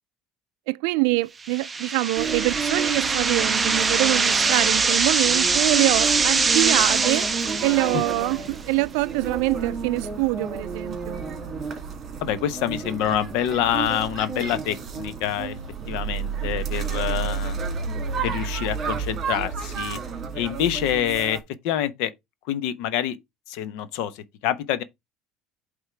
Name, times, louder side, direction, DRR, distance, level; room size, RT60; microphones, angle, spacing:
voice 1, 0.7-7.3 7.6-11.2, right 23 dB, 85° right, 0.3 m, -25 dB
sound 1, 1.4-8.4, right 4 dB, 15° right, 0.5 m, -23 dB
sound 2, 2.2-21.4, right 5 dB, 30° right, 2.2 m, -31 dB
voice 2, 12.2-15.6 15.9-17.6 18.2-20.0 20.3-22.1 22.5-23.2 23.5-24.8, left 10 dB, 75° left, 0.8 m, -26 dB
8.2 x 3.6 x 4.5 m
cardioid pair, 155°, 0 cm